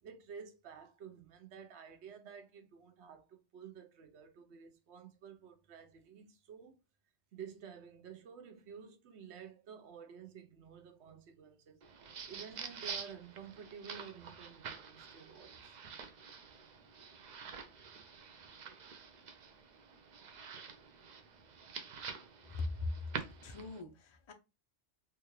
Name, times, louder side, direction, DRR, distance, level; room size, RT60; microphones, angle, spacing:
voice 1, 0.0-6.8 7.3-15.8 16.5-16.6, right 7 dB, 70° right, 1.0 m, -52 dB
sound 1, 11.8-23.8, right 6 dB, 55° right, 0.5 m, -48 dB
voice 2, 22.5-23.1 23.4-24.3, left 3 dB, 40° left, 0.4 m, -40 dB
3.6 x 2.3 x 3.0 m
omnidirectional pair, 1.2 m